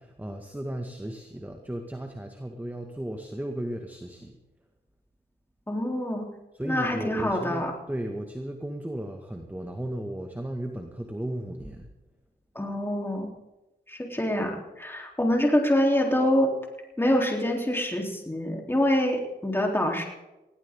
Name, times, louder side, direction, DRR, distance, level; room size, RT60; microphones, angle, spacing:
voice 1, 0.0-4.4 6.5-11.9, right 1 dB, 10° right, 4 dB, 1.9 m, -35 dB
voice 2, 5.7-6.3 6.6-7.7 12.6-13.3 13.9-16.6 17.0-20.0, left 1 dB, 10° left, 0 dB, 3.5 m, -25 dB
19.5 x 17.5 x 3.8 m, 1.0 s
cardioid pair, 55°, 19 cm